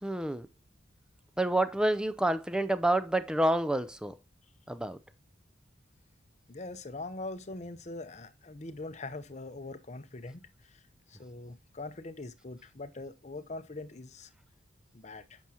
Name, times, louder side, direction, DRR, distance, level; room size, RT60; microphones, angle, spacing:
voice 1, 0.0-0.5 1.4-4.1 4.7-5.0, right 1 dB, 5° right, 0.4 m, -28 dB
voice 2, 6.5-10.8 11.1-14.3 14.9-15.4, left 2 dB, 35° left, 0.7 m, -42 dB
9.0 x 6.2 x 2.8 m
head